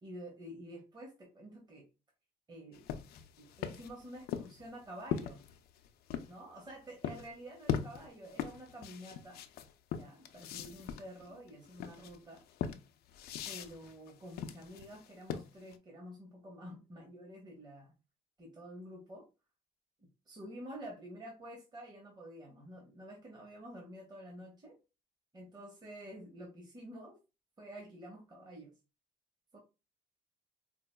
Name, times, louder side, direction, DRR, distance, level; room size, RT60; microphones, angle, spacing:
voice 1, 0.0-1.9 2.5-2.9 3.4-5.4 6.3-9.4 9.9-12.4 13.5-17.9 18.4-19.3 20.0-24.8 25.3-27.2 27.6-28.7 29.5-29.6, equal, 25° right, 1 dB, 1.0 m, -49 dB
sound 1, 2.7-6.3 7.0-7.3 7.7-15.7, left 9 dB, 70° left, 0.5 m, -40 dB
4.5 x 2.4 x 2.2 m, 0.29 s
cardioid pair, 110°, 17 cm